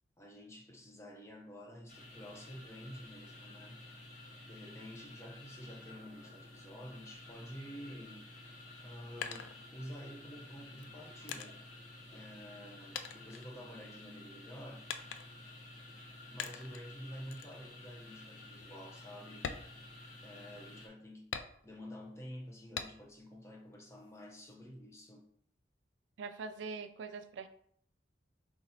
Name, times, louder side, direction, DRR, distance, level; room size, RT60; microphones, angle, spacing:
voice 1, 0.2-4.0 4.4-11.6 12.1-14.9 16.3-19.5 20.2-21.3 21.6-25.3, equal, 15° left, 0.6 m, -50 dB
sound 1, 1.9-20.9, left 2 dB, 45° left, 1.0 m, -52 dB
sound 2, 9.0-10.2 10.8-12.7 12.9-14.1 14.9-15.5 16.4-16.9 17.3-17.6 18.0-18.1 18.5-18.7 19.3-20.5 21.3-22.0 22.7-23.3 23.7-24.5, left 7 dB, 90° left, 0.4 m, -44 dB
voice 2, 26.2-27.5, right 4 dB, 85° right, 0.4 m, -43 dB
3.7 x 3.0 x 4.1 m
head